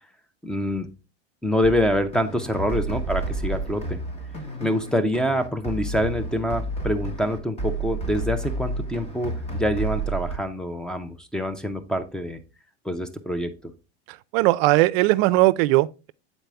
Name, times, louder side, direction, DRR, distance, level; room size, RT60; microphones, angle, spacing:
voice 1, 0.4-0.9 1.4-4.0 4.6-12.4 12.9-13.5, equal, ahead, 0.5 m, -26 dB
sound 1, 1.6-10.4, right 2 dB, 20° left, 1.0 m, -31 dB
voice 2, 14.3-16.1, right 19 dB, 60° right, 0.4 m, -19 dB
8.0 x 4.1 x 3.4 m
supercardioid pair, 130°, 33 cm